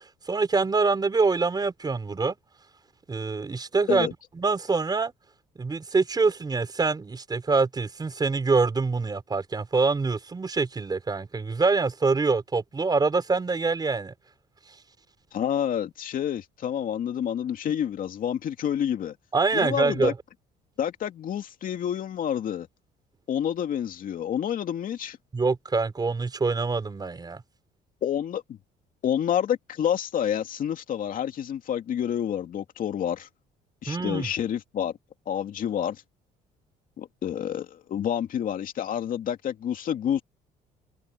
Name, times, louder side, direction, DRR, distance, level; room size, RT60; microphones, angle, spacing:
voice 1, 0.3-2.4 3.1-4.1 4.4-5.1 5.6-14.1 19.3-20.1 25.3-27.4 33.9-34.3, right 4 dB, 25° right, 4.3 m, -25 dB
voice 2, 15.3-19.2 19.5-20.1 20.8-22.7 23.3-25.2 28.0-28.6 29.0-33.3 33.8-34.9 35.3-36.0 37.0-40.2, left 9 dB, 55° left, 2.6 m, -28 dB
cardioid pair, 110°, 17 cm